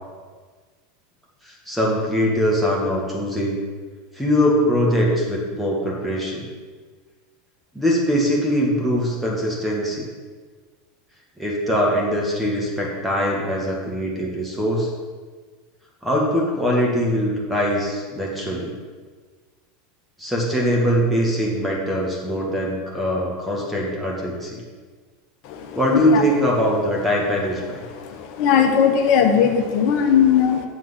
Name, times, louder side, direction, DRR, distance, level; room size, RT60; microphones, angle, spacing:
voice 1, 1.4-3.6 4.1-6.5 7.7-10.1 11.4-14.9 16.0-18.7 20.2-24.6 25.8-27.8, equal, 5° right, -3 dB, 2.1 m, -22 dB
voice 2, 28.0-30.6, left 7 dB, 50° left, 5 dB, 1.2 m, -18 dB
7.7 x 6.0 x 7.4 m, 1.5 s
figure-of-eight pair, 80°, 0 cm